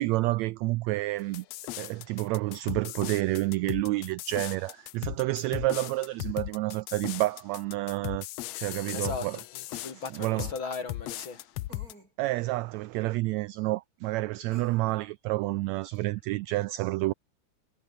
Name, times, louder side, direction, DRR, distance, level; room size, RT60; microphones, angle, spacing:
voice 1, 0.0-1.4 1.8-8.3 8.6-9.4 10.1-10.5 12.2-17.1, right 19 dB, 85° right, 1.5 m, -29 dB
sound 1, 1.3-11.9, left 17 dB, 80° left, 1.5 m, -38 dB
voice 2, 8.9-11.4, left 4 dB, 40° left, 3.4 m, -37 dB
sound 2, 9.4-9.5 11.7-12.1 14.5-15.0, right 2 dB, 25° right, 7.2 m, -52 dB
omnidirectional pair, 3.7 m